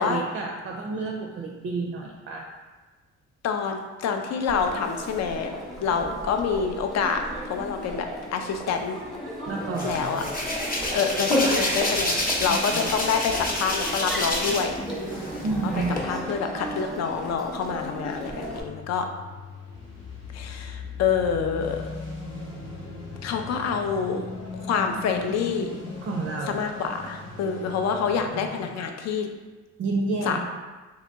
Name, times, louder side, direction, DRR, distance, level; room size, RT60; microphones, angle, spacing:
voice 1, 0.0-2.5 9.5-10.4 12.7-12.9 15.4-16.0 26.0-26.6 29.8-30.4, right 3 dB, 45° right, 1 dB, 0.4 m, -30 dB
voice 2, 3.4-5.6 5.8-9.0 9.8-10.2 10.9-14.7 16.0-19.1 20.3-21.8 23.2-24.3 24.7-25.8 26.5-29.3 30.2-30.4, left 6 dB, 60° left, 5 dB, 0.5 m, -27 dB
Crowd, 4.5-18.6, equal, ahead, 0.8 m, -35 dB
Hands, 9.8-14.8 15.1-16.0, left 1 dB, 30° left, 0.8 m, -27 dB
sound 1, 18.5-28.7, left 3 dB, 90° left, 1.4 m, -38 dB
2.9 x 2.7 x 3.4 m, 1.3 s
cardioid pair, 90°, 30 cm